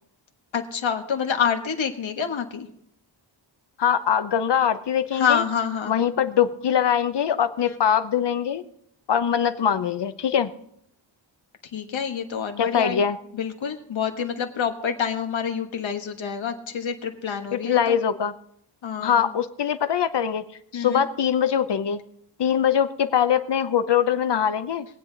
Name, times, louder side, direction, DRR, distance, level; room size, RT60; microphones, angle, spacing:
voice 1, 0.5-2.7 5.1-5.9 7.6-7.8 11.7-13.0 13.3-18.0 18.8-19.3 20.7-21.0, left 7 dB, 85° left, 5 dB, 1.4 m, -27 dB
voice 2, 3.8-5.4 5.9-8.6 9.1-10.5 12.6-13.2 17.5-18.3 19.0-20.4 20.7-22.0 22.4-24.9, left 8 dB, 65° left, 11 dB, 0.9 m, -22 dB
22.0 x 8.2 x 3.9 m, 0.72 s
wide cardioid pair, 95°, 45 cm